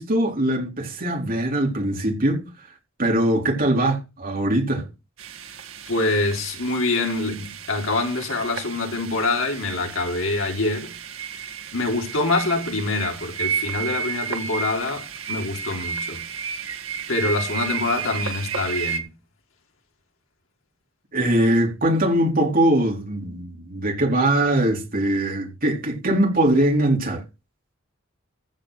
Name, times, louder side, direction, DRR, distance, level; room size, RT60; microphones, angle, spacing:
voice 1, 0.0-2.5 3.0-4.9 21.1-27.2, right 1 dB, 45° right, 4.0 m, -21 dB
sound 1, 5.2-19.0, right 7 dB, 90° right, 1.7 m, -32 dB
voice 2, 5.9-10.9 11.7-16.2 17.1-19.1, left 2 dB, 75° left, 3.4 m, -25 dB
15.5 x 5.2 x 6.4 m
head